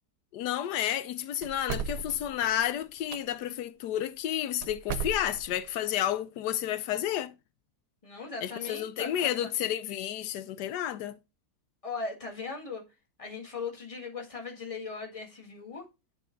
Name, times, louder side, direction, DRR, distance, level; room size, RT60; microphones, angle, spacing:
voice 1, 0.3-7.3 8.4-11.2, left 11 dB, 85° left, 1.2 m, -31 dB
sound 1, 1.4-3.2 4.6-5.6, right 6 dB, 65° right, 1.0 m, -36 dB
voice 2, 8.0-9.5 11.8-12.8 13.2-15.9, left 4 dB, 20° left, 1.8 m, -38 dB
9.6 x 4.0 x 3.8 m
omnidirectional pair, 1.7 m